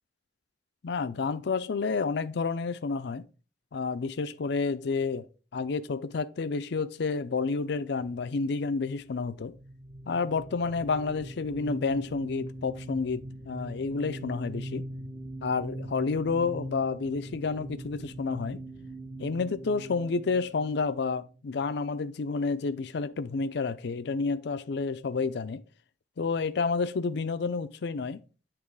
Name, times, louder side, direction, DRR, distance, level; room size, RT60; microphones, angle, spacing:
voice 1, 0.8-3.3 3.7-5.3 5.5-9.5 10.1-14.9 15.4-18.6 19.2-25.6 26.2-28.2, left 4 dB, 70° left, 0.5 m, -30 dB
sound 1, 9.5-21.7, right 1 dB, 30° right, 0.8 m, -42 dB
8.7 x 3.1 x 4.6 m
head